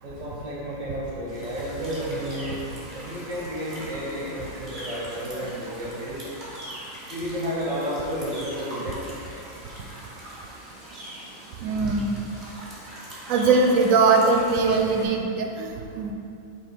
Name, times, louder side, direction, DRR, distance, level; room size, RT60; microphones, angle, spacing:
voice 1, 0.0-2.5 2.9-6.2 7.1-9.1, equal, 60° right, -7 dB, 1.4 m, -31 dB
sound 1, 1.3-15.0, right 1 dB, 40° right, 1.4 m, -41 dB
voice 2, 11.6-12.1 13.3-16.1, right 4 dB, 85° right, 3 dB, 1.0 m, -21 dB
5.5 x 3.4 x 5.1 m, 2.6 s
omnidirectional pair, 1.4 m